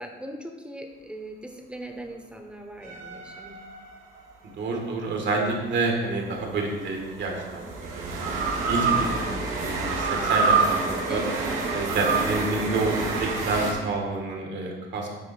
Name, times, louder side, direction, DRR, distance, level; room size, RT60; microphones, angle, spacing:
voice 1, 0.0-3.6 11.1-11.4, right 1 dB, 5° right, 3 dB, 1.0 m, -39 dB
sound 1, 2.8-4.3 6.2-13.7, right 4 dB, 90° right, 1.3 m, -27 dB
voice 2, 4.6-8.3 8.7-9.3 9.5-11.2 11.7-12.9 13.2-15.1, right 3 dB, 65° right, 1 dB, 1.5 m, -28 dB
8.3 x 4.0 x 4.1 m, 1.3 s
cardioid pair, 90°, 20 cm